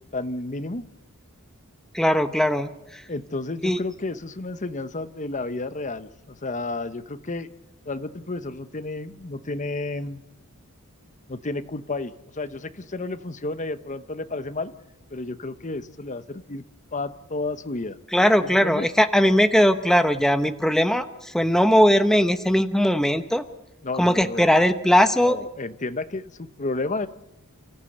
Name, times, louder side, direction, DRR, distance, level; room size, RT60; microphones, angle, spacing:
voice 1, 0.1-0.8 3.1-7.5 7.8-10.2 11.3-14.7 15.1-16.6 16.9-18.0 18.4-18.9 23.8-24.5 25.2-27.1, left 2 dB, 35° left, 11 dB, 1.0 m, -31 dB
voice 2, 1.9-3.0 3.6-3.8 18.1-23.4 24.0-25.4, equal, ahead, 8 dB, 0.9 m, -19 dB
29.5 x 14.5 x 8.0 m, 0.91 s
head